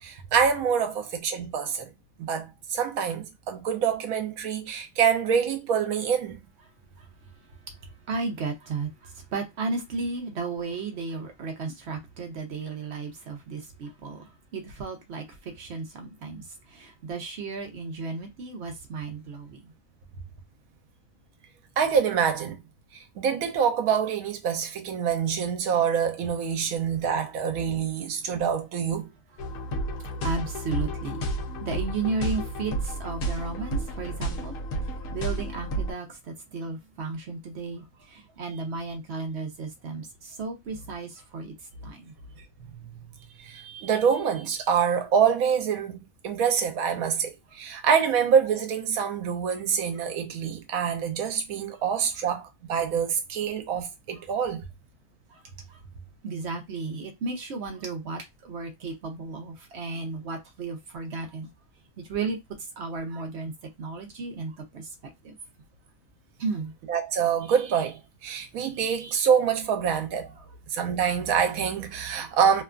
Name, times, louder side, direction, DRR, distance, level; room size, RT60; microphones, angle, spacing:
voice 1, 0.0-1.9 2.2-6.4 21.8-22.6 22.9-29.1 42.7-43.0 43.4-46.0 46.2-54.6 66.9-70.3 70.7-72.6, right 7 dB, 85° right, 1.1 m, -26 dB
voice 2, 8.1-19.7 30.2-31.3 31.6-34.6 35.1-41.5 41.8-42.1 55.3-55.8 56.2-61.5 62.0-62.4 62.8-63.5 63.8-64.9 65.2-65.4 66.4-66.7, right 4 dB, 60° right, 0.8 m, -34 dB
sound 1, 29.4-35.9, right 1 dB, 75° left, 1.0 m, -31 dB
2.8 x 2.3 x 2.3 m
omnidirectional pair, 1.5 m